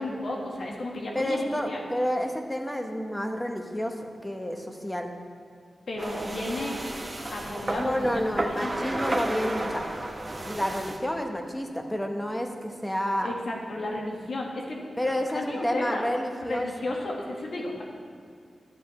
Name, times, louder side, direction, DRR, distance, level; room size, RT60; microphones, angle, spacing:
voice 1, 0.0-1.8 5.9-6.8 7.2-8.9 13.2-16.0 16.5-17.8, left 1 dB, 70° left, -1 dB, 1.5 m, -33 dB
voice 2, 1.1-5.1 7.8-9.8 10.4-13.3 15.0-16.7, equal, 10° left, 3 dB, 1.0 m, -29 dB
sound 1, 6.0-11.0, right 1 dB, 30° right, 0.9 m, -33 dB
12.5 x 6.9 x 3.2 m, 2.4 s
cardioid pair, 65°, 0 cm